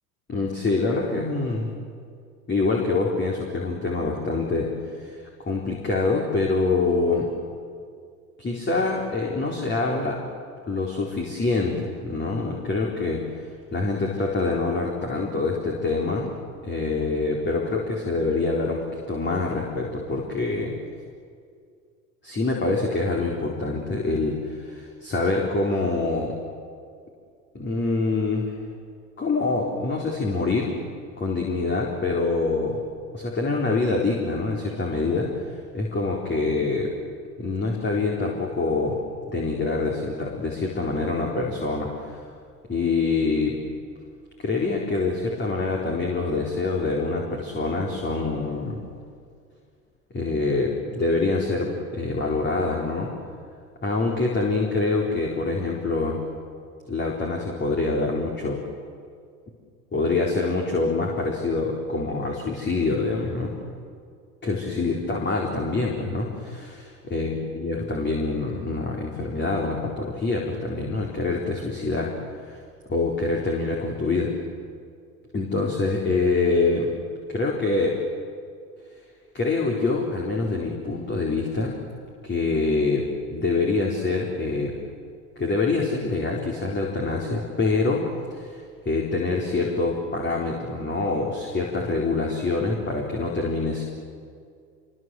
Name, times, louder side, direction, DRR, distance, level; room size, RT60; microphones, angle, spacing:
voice 1, 0.3-1.7 2.5-7.3 8.4-10.2 10.7-13.2 13.7-16.3 16.6-20.7 22.2-26.3 27.5-28.5 29.2-30.7 31.2-32.8 33.1-36.9 37.4-39.0 39.3-42.2 42.7-43.6 44.4-48.8 50.1-53.1 53.8-56.2 56.9-58.6 59.9-63.5 64.4-72.2 72.5-72.6 72.9-74.3 75.3-76.9 77.3-78.0 79.3-81.8 82.2-84.8 85.4-93.8, left 3 dB, 20° left, -1 dB, 4.2 m, -25 dB
26.5 x 23.5 x 7.8 m, 2.2 s
hypercardioid pair, 90°, 49 cm